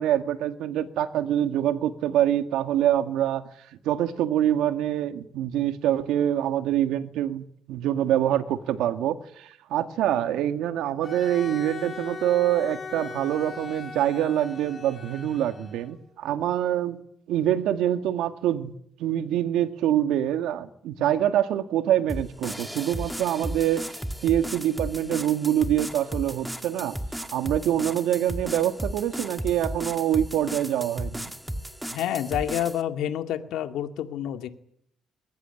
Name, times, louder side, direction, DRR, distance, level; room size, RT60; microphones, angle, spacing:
voice 1, 0.0-3.4 3.9-17.0 17.3-18.7 19.0-23.9 24.2-31.2, right 11 dB, 85° right, 10 dB, 1.9 m, -25 dB
Bowed string instrument, 11.0-16.0, left 4 dB, 25° left, 7.0 m, -39 dB
sound 1, 22.1-32.8, equal, 5° right, 1.7 m, -35 dB
voice 2, 31.9-34.5, left 11 dB, 80° left, 8 dB, 2.2 m, -28 dB
22.0 x 18.5 x 9.8 m, 0.70 s
cardioid pair, 125°, 0 cm